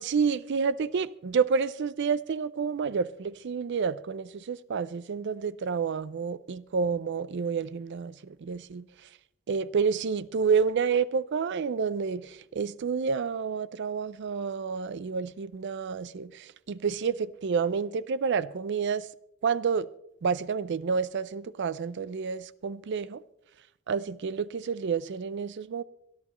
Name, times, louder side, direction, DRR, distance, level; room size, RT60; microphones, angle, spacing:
voice 1, 0.0-8.8 9.5-19.1 19.4-19.9 20.2-23.2 23.9-25.8, right 5 dB, 55° right, 0.4 m, -29 dB
24.0 x 11.0 x 3.1 m
head